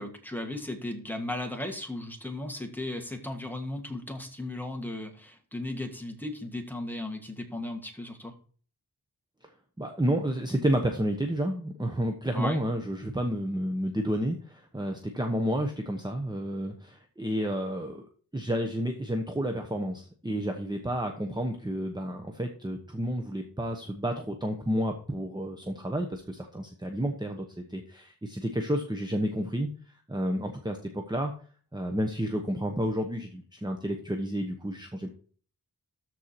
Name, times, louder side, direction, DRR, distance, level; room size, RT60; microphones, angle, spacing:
voice 1, 0.0-8.3 12.3-12.6, left 1 dB, 5° left, 3 dB, 1.8 m, -36 dB
voice 2, 9.8-18.0 18.3-29.7 30.1-31.3 31.7-35.1, equal, 10° right, 4 dB, 1.1 m, -30 dB
13.5 x 4.6 x 4.4 m, 0.43 s
wide cardioid pair, 85°, 39 cm